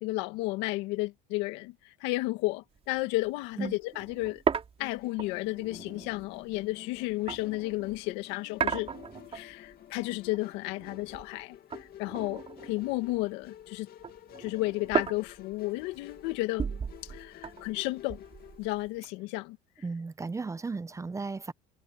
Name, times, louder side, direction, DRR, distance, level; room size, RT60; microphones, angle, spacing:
voice 1, 0.0-4.4 4.8-8.9 9.3-13.9 14.4-16.7 17.0-18.2 18.6-19.6, left 20 dB, 80° left, 2.0 m, -33 dB
sound 1, 2.8-3.0 3.3-3.4 3.6-8.0 8.6-9.7 10.1-11.4 11.7-13.4 13.8-19.0, right 6 dB, 30° right, 3.8 m, -36 dB
Musical instrument, 4.8-18.6, left 12 dB, 55° left, 2.3 m, -50 dB
voice 2, 19.8-21.5, right 4 dB, 15° right, 0.7 m, -35 dB
supercardioid pair, 95°, 18 cm